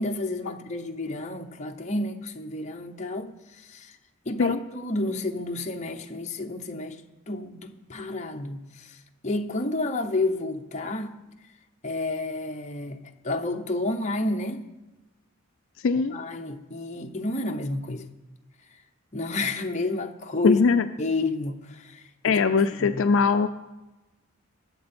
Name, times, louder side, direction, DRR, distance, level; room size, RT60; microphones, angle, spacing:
voice 1, 0.0-4.0 4.2-7.0 7.3-11.2 11.8-14.6 16.0-18.0 19.1-20.6 21.0-23.1, left 2 dB, 30° left, 0.8 m, -30 dB
voice 2, 15.8-16.2 20.4-20.8 22.2-23.5, left 5 dB, 65° left, 0.4 m, -21 dB
20.5 x 7.7 x 4.4 m
head